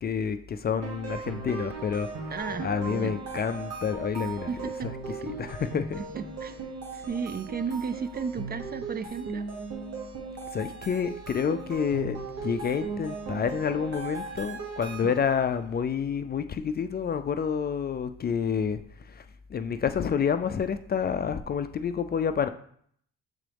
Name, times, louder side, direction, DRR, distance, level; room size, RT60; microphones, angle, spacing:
voice 1, 0.0-2.3 2.6-4.5 5.3-6.0 10.5-18.8 19.1-19.2 19.5-22.5, left 7 dB, 35° left, 10 dB, 0.4 m, -29 dB
sound 1, 0.8-15.5, right 4 dB, 55° right, 1.2 m, -38 dB
voice 2, 2.3-3.2 4.5-4.9 6.0-9.5 15.0-15.1, right 5 dB, 35° right, 12 dB, 0.4 m, -34 dB
7.2 x 3.8 x 3.4 m, 0.63 s
cardioid pair, 90°, 30 cm